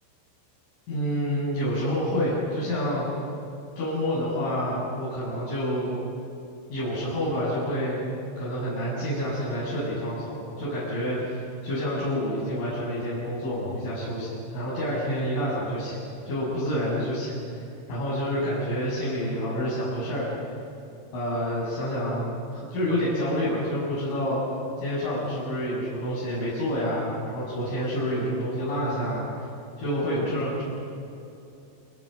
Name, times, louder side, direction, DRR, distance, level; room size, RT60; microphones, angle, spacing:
voice 1, 0.9-3.1 3.8-6.0 6.7-8.1 8.4-16.0 16.3-20.3 21.1-24.4 24.8-29.3 29.8-30.6, equal, 75° left, -9 dB, 10.0 m, -28 dB
29.0 x 27.5 x 6.7 m, 2.7 s
omnidirectional pair, 5.6 m